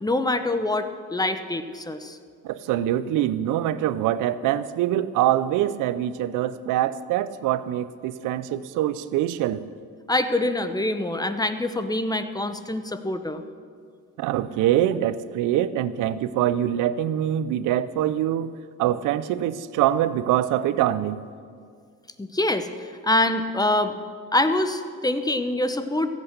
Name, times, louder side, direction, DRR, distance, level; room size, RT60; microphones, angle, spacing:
voice 1, 0.0-2.2 10.1-13.4 22.2-23.9 24.3-26.1, left 2 dB, 15° left, 10 dB, 0.8 m, -25 dB
voice 2, 2.4-9.6 14.2-18.5 18.8-21.2, right 12 dB, 90° right, 15 dB, 0.6 m, -24 dB
14.5 x 8.3 x 6.6 m, 2.1 s
cardioid pair, 90°, 30 cm